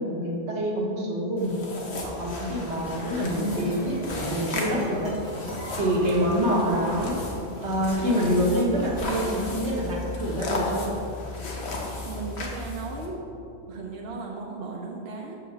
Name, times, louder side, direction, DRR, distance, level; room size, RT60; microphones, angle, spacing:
voice 1, 0.0-5.1 5.8-7.2 7.6-10.9, equal, 85° right, -2 dB, 1.5 m, -26 dB
sound 1, 1.4-13.1, left 2 dB, 75° left, 1.3 m, -35 dB
sound 2, 2.0-13.1, left 1 dB, 45° left, 1.6 m, -40 dB
sound 3, 3.1-7.2, right 1 dB, 25° right, 1.5 m, -35 dB
voice 2, 12.0-13.3 13.7-15.4, right 4 dB, 65° right, -1 dB, 0.9 m, -36 dB
6.3 x 5.5 x 5.7 m, 2.8 s
omnidirectional pair, 1.1 m